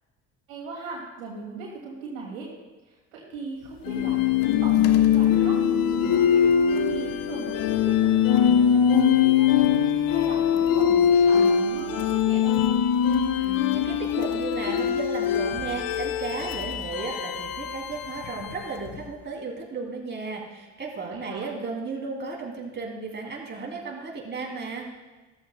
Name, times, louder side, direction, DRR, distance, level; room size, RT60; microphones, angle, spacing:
voice 1, 0.5-2.5 2.9-4.3 4.6-6.4 6.8-9.7 10.1-12.5 21.1-21.5, right 4 dB, 80° right, -2 dB, 2.4 m, -38 dB
sound 1, 3.9-19.0, left 8 dB, 55° left, 0.8 m, -22 dB
voice 2, 13.3-24.9, right 4 dB, 25° right, -1 dB, 2.8 m, -34 dB
13.5 x 13.5 x 2.2 m, 1.2 s
hypercardioid pair, 55°, 40 cm